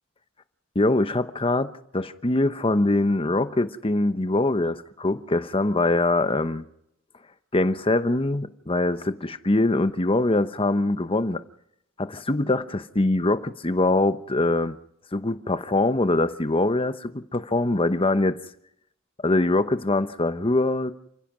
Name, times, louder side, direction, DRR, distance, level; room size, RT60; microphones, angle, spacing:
voice 1, 0.7-6.7 7.5-11.4 12.0-14.7 15.1-18.4 19.2-20.9, left 2 dB, 25° left, 1.0 m, -23 dB
29.0 x 16.0 x 6.2 m
head